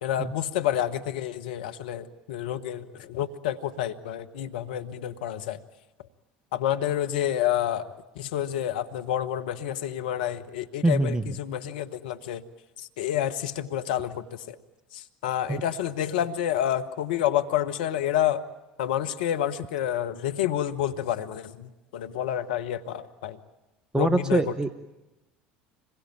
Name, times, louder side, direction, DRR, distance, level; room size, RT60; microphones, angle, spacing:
voice 1, 0.0-5.6 6.5-12.4 12.8-14.6 14.9-18.4 18.8-23.4 23.9-24.5, left 11 dB, 75° left, 10 dB, 1.2 m, -29 dB
voice 2, 10.8-11.4 15.5-15.6 23.9-24.7, right 2 dB, 15° right, 12 dB, 1.0 m, -24 dB
26.5 x 21.5 x 8.8 m, 1.0 s
hypercardioid pair, 70°, 5 cm